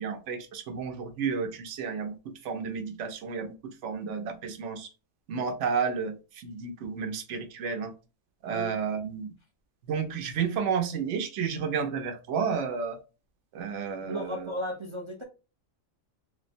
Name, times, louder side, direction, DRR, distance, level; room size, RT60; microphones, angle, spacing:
voice 1, 0.0-4.9 5.3-7.9 8.4-9.3 9.9-13.0 13.5-14.5, right 6 dB, 65° right, 1.0 m, -31 dB
voice 2, 14.0-15.2, equal, 50° right, 0.3 m, -35 dB
3.2 x 2.8 x 2.6 m
omnidirectional pair, 1.4 m